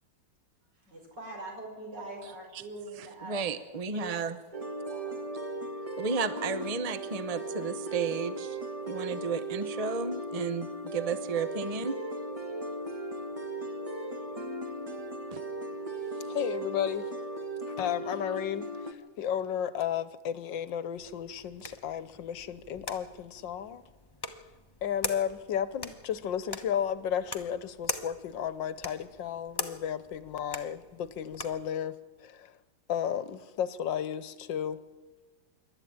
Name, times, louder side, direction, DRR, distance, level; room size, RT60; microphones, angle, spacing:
voice 1, 0.7-3.5 3.9-4.2 4.9-5.1, right 2 dB, 65° right, 5.9 m, -43 dB
voice 2, 3.2-4.3 6.0-8.6 8.9-12.0 15.3-15.4, right 5 dB, 35° right, 0.6 m, -33 dB
sound 1, 4.5-18.9, right 1 dB, 20° right, 1.7 m, -37 dB
voice 3, 16.3-17.1 17.7-23.8 24.8-32.5 32.9-34.8, left 9 dB, 75° left, 1.6 m, -33 dB
sound 2, 21.0-31.7, left 2 dB, 20° left, 0.8 m, -42 dB
26.5 x 12.0 x 8.8 m
omnidirectional pair, 2.1 m